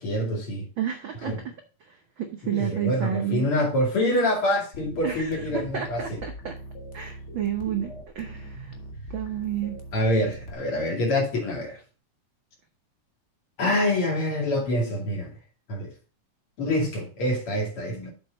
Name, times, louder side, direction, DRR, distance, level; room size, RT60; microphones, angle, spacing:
voice 1, 0.0-0.7 1.2-1.4 2.4-6.2 9.9-11.8 13.6-15.3 15.7-15.9 16.6-18.1, left 1 dB, 50° left, 3.2 m, -26 dB
voice 2, 0.8-1.5 1.9-3.5 4.0-4.1 5.0-6.6 6.9-8.7 9.1-9.8, right 9 dB, 85° right, 1.0 m, -31 dB
sound 1, 4.7-10.5, right 1 dB, 65° left, 0.6 m, -41 dB
7.6 x 5.2 x 5.2 m
omnidirectional pair, 3.4 m